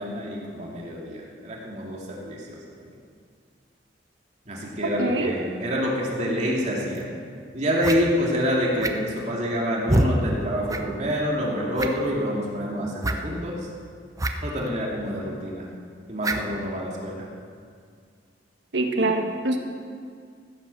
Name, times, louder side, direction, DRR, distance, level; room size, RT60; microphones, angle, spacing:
voice 1, 0.0-2.9 4.5-7.1 7.5-13.6 14.4-15.7 16.1-17.3, equal, 40° right, -3 dB, 2.5 m, -27 dB
voice 2, 5.0-5.3 18.7-19.6, right 2 dB, 85° right, 4 dB, 1.4 m, -24 dB
sound 1, 7.0-7.1 7.8-8.0 8.8-9.2 9.9-10.1 10.7-10.8 11.1-11.2 11.7-12.1 13.0-13.2 14.2-14.3 14.6-14.7 16.2-16.5, right 1 dB, 20° right, 0.8 m, -24 dB
15.5 x 9.0 x 6.7 m, 2.1 s
head